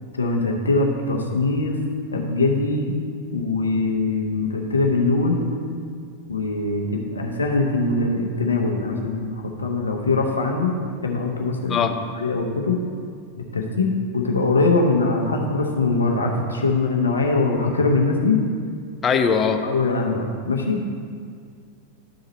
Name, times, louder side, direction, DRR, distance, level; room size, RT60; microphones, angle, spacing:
voice 1, 0.2-1.8 2.1-2.9 3.3-5.4 6.3-10.7 11.0-11.9 12.1-12.8 13.5-18.4 19.6-20.8, left 3 dB, 75° left, 1 dB, 0.9 m, -22 dB
voice 2, 19.0-19.6, left 6 dB, 25° left, 7 dB, 0.5 m, -20 dB
11.5 x 3.9 x 4.1 m, 2.1 s
figure-of-eight pair, 90°, 0 cm